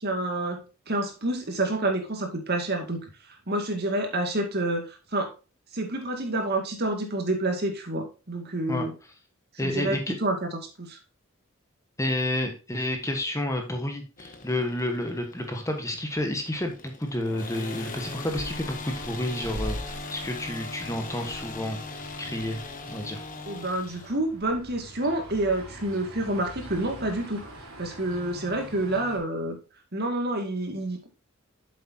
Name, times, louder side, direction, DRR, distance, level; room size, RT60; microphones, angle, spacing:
voice 1, 0.0-3.0 3.5-5.3 5.7-8.9 9.6-11.0 23.5-27.4 27.8-29.6 29.9-31.1, right 2 dB, 50° right, 4 dB, 2.2 m, -28 dB
voice 2, 9.6-10.1 12.0-21.8 22.2-22.6 22.9-23.2, left 1 dB, 15° left, 4 dB, 1.3 m, -30 dB
sound 1, 14.2-24.2, left 3 dB, 40° left, 1.3 m, -40 dB
sound 2, 18.0-29.2, equal, 80° right, 3.6 m, -43 dB
8.4 x 7.5 x 2.8 m, 0.31 s
head